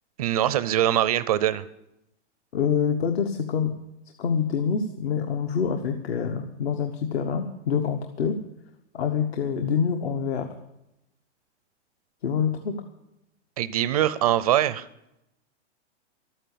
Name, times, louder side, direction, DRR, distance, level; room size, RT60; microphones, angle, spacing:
voice 1, 0.2-1.6 13.6-14.9, right 12 dB, 35° right, 17 dB, 0.4 m, -23 dB
voice 2, 2.5-3.7 4.2-8.4 8.9-10.5 12.2-12.7, left 7 dB, 60° left, 7 dB, 1.3 m, -26 dB
12.5 x 9.1 x 8.4 m, 0.87 s
hypercardioid pair, 155°, 35 cm